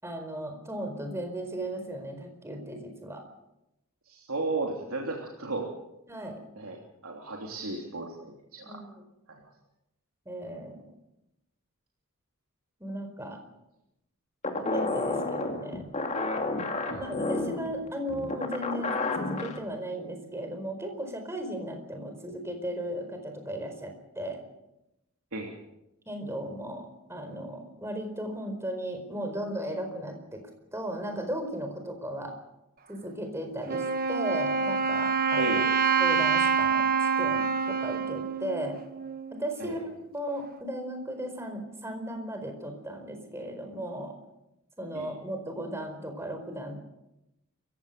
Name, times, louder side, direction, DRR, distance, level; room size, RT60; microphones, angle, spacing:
voice 1, 0.0-3.2 6.1-6.4 8.7-9.0 10.2-10.8 12.8-13.4 14.6-15.8 17.0-24.4 26.1-30.4 30.7-32.3 32.9-35.5 36.0-38.8 39.4-44.1 44.8-46.8, right 1 dB, 10° right, 5 dB, 4.6 m, -36 dB
voice 2, 4.1-5.7 6.6-6.8 7.0-8.8 16.9-17.0 25.3-25.5 35.4-35.7 39.6-39.8 44.9-45.1, right 3 dB, 80° right, -1 dB, 3.2 m, -34 dB
sound 1, 14.4-19.6, left 2 dB, 30° left, 2.6 m, -31 dB
Wind instrument woodwind instrument, 33.7-39.4, right 5 dB, 45° right, 1.2 m, -26 dB
27.0 x 16.5 x 6.8 m, 0.89 s
head